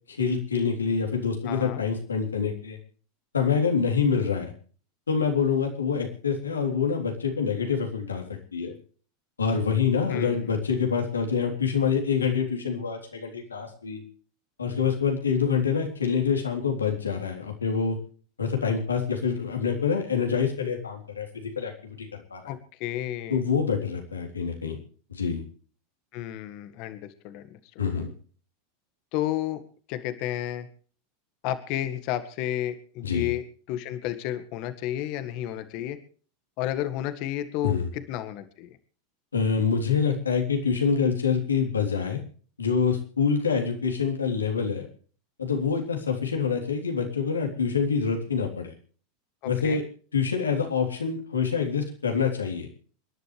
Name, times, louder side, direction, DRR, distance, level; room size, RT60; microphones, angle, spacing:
voice 1, 0.1-2.8 3.3-4.5 5.1-8.7 9.4-14.0 14.6-18.0 18.4-22.4 23.3-24.8 25.1-25.4 27.8-28.1 33.0-33.3 37.6-37.9 39.3-42.2 42.6-44.9 45.4-48.7 49.4-49.8 50.1-52.7, left 6 dB, 90° left, 3 dB, 3.5 m, -26 dB
voice 2, 1.4-1.8 10.1-10.6 22.5-23.4 26.1-27.6 28.0-28.1 29.1-29.6 29.9-30.7 31.4-36.0 36.6-38.7 49.4-49.8, left 12 dB, 55° left, 10 dB, 1.7 m, -32 dB
28.0 x 11.0 x 3.3 m, 0.42 s
hypercardioid pair, 90°, 0 cm